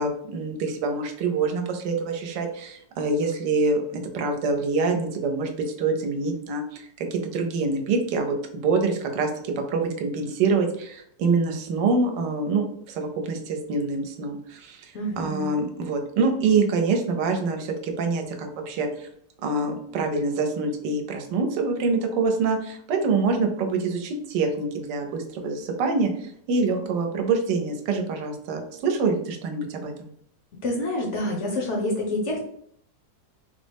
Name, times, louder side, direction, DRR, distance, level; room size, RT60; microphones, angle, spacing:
voice 1, 0.0-5.5 5.8-9.3 9.7-14.9 15.2-19.1 19.4-30.1, right 4 dB, 80° right, 4 dB, 1.2 m, -25 dB
voice 2, 14.9-15.6 30.6-32.4, left 1 dB, 60° left, -1 dB, 0.7 m, -27 dB
3.8 x 2.0 x 3.3 m, 0.68 s
omnidirectional pair, 1.9 m